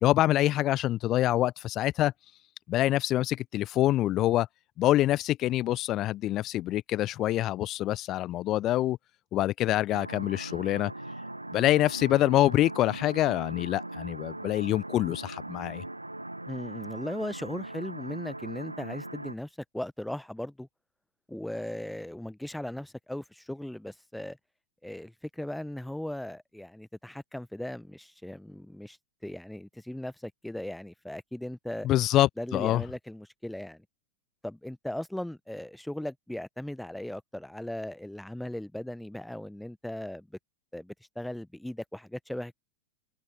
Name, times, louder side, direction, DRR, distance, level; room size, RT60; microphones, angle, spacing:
voice 1, 0.0-2.1 2.7-4.5 4.8-9.0 9.3-10.9 11.5-15.8 31.8-32.8, left 14 dB, 35° left, 0.5 m, -25 dB
sound 1, 9.9-19.3, right 1 dB, 85° right, 2.1 m, -40 dB
voice 2, 16.5-20.7 21.3-24.4 24.8-29.0 29.2-31.9 32.4-33.8 34.4-40.3 40.7-42.5, left 1 dB, 5° left, 0.9 m, -38 dB
figure-of-eight pair, 90°, 0 cm